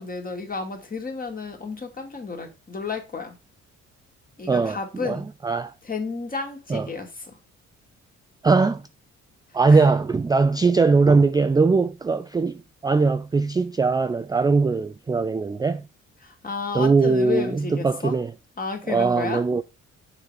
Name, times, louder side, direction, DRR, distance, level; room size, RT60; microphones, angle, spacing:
voice 1, 0.0-3.4 4.4-5.3 5.8-7.3 9.7-9.8 16.2-18.2 18.6-19.4, left 4 dB, 30° left, 2.3 m, -31 dB
voice 2, 4.5-5.7 6.7-6.9 8.4-8.8 9.5-15.8 16.7-18.3 18.9-19.6, right 4 dB, 15° right, 0.3 m, -21 dB
6.9 x 4.0 x 4.8 m
cardioid pair, 90°, 30 cm